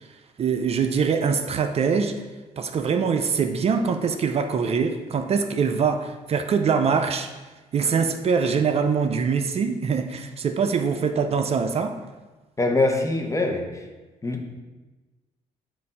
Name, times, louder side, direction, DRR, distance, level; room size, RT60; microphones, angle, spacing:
voice 1, 0.4-2.2 2.6-7.3 7.7-12.0, right 6 dB, 45° right, 7 dB, 0.5 m, -23 dB
voice 2, 12.6-13.8 14.2-14.5, left 2 dB, 20° left, 3 dB, 1.0 m, -24 dB
7.4 x 2.6 x 5.4 m, 1.2 s
supercardioid pair, 70°, 14 cm